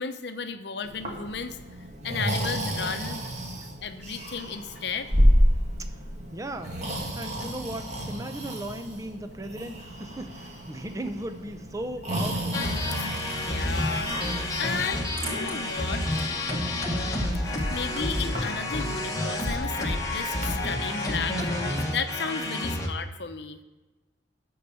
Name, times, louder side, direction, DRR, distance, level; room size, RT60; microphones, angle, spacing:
voice 1, 0.0-3.2 3.8-5.1 13.4-14.1 14.6-16.0 17.4-23.6, left 5 dB, 65° left, 9 dB, 0.8 m, -34 dB
Breathing, 0.8-20.5, equal, 40° right, 1.8 m, -31 dB
voice 2, 6.3-6.8 7.1-12.6 22.4-22.7, right 1 dB, 20° right, 8 dB, 0.7 m, -37 dB
sound 1, 12.5-22.9, left 1 dB, 20° left, 1.2 m, -29 dB
sound 2, 13.0-18.1, right 1 dB, 60° right, 3.4 m, -43 dB
13.0 x 4.7 x 7.0 m, 1.2 s
head